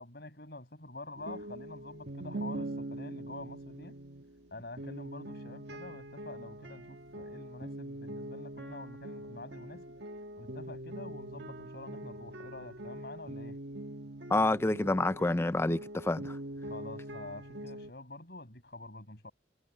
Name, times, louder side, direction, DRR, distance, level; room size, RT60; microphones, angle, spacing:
voice 1, 0.0-3.9 4.5-9.9 10.4-13.6 16.6-19.3, left 2 dB, 60° left, 6.1 m, -47 dB
sound 1, 1.2-17.9, right 1 dB, 75° right, 1.4 m, -43 dB
voice 2, 14.3-16.4, left 2 dB, 15° left, 0.3 m, -28 dB
head